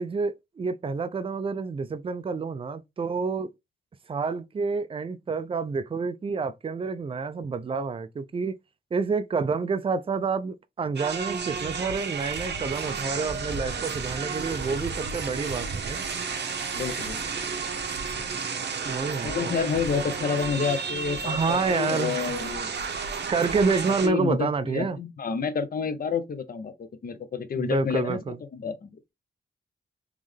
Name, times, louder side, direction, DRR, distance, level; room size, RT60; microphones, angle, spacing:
voice 1, 0.0-3.5 4.1-8.5 8.9-16.0 18.8-19.5 21.2-22.3 23.3-25.0 27.6-28.4, right 4 dB, 30° right, 0.4 m, -28 dB
sound 1, 11.0-24.1, right 5 dB, 60° right, 0.9 m, -32 dB
voice 2, 16.7-17.4 19.2-22.7 24.0-28.2 28.5-29.1, left 6 dB, 50° left, 0.6 m, -29 dB
3.6 x 3.1 x 3.4 m
wide cardioid pair, 105°, 20 cm